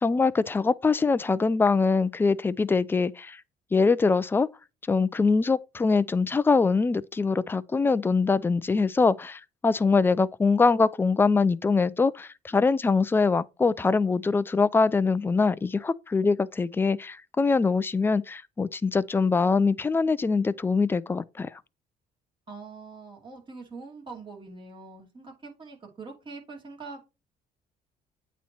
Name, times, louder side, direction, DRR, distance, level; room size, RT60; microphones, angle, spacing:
voice 1, 0.0-3.4 3.7-4.5 4.9-21.5, left 4 dB, 15° left, 0.3 m, -23 dB
voice 2, 22.5-27.0, right 4 dB, 30° right, 2.5 m, -43 dB
8.5 x 3.0 x 4.1 m
cardioid pair, 110°, 17 cm